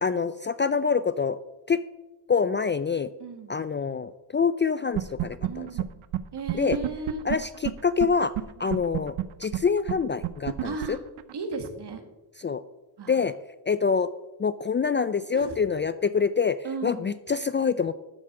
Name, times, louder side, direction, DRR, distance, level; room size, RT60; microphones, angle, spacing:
voice 1, 0.0-1.4 1.7-1.8 2.3-3.1 3.5-5.7 6.5-6.8 7.2-8.3 8.6-9.1 9.4-11.0 12.4-12.6 13.1-13.3 13.7-14.1 14.4-16.6 16.8-17.9, left 5 dB, 25° left, 14 dB, 0.4 m, -25 dB
voice 2, 3.2-3.6 5.4-6.0 6.3-7.2 8.6-8.8 10.6-11.0 11.3-12.0 13.0-13.2 15.3-15.6 16.6-17.1, right 4 dB, 55° right, 5 dB, 2.2 m, -36 dB
sound 1, 4.9-5.5 5.8-5.9 6.1-6.2 6.5-8.1 8.3-8.4 8.7-11.7, right 14 dB, 80° right, 0.8 m, -28 dB
12.5 x 4.9 x 7.5 m, 1.1 s
cardioid pair, 85°, 48 cm